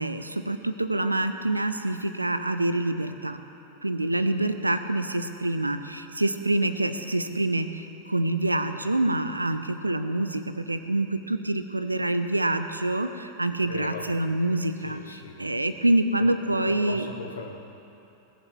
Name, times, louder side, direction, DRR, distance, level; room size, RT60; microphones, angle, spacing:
voice 1, 0.0-3.4 3.8-17.1, right 1 dB, 85° right, 10 dB, 0.7 m, -26 dB
voice 2, 13.6-14.2 14.8-15.5 16.2-16.4 16.7-17.6, left 3 dB, 70° left, 4 dB, 1.4 m, -38 dB
20.0 x 7.4 x 7.1 m, 2.9 s
figure-of-eight pair, 90°, 0 cm